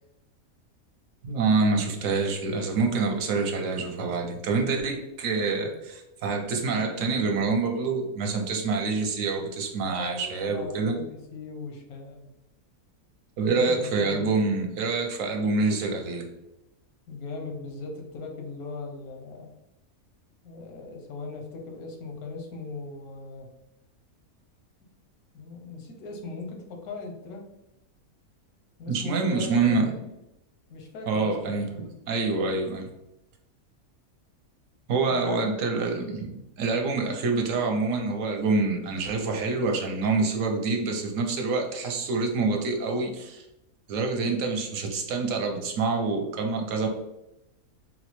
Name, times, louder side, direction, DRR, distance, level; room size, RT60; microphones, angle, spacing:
voice 1, 1.2-11.0 13.4-16.3 28.9-29.8 31.1-31.7 32.1-32.9 34.9-43.5 43.9-46.9, right 4 dB, 70° right, 2 dB, 0.9 m, -26 dB
voice 2, 9.9-12.3 13.5-14.2 17.1-19.5 20.4-23.5 25.3-27.5 28.8-30.0 30.7-31.6 35.1-35.4, left 3 dB, 90° left, 1 dB, 1.2 m, -39 dB
4.0 x 2.0 x 2.9 m, 0.91 s
omnidirectional pair, 1.5 m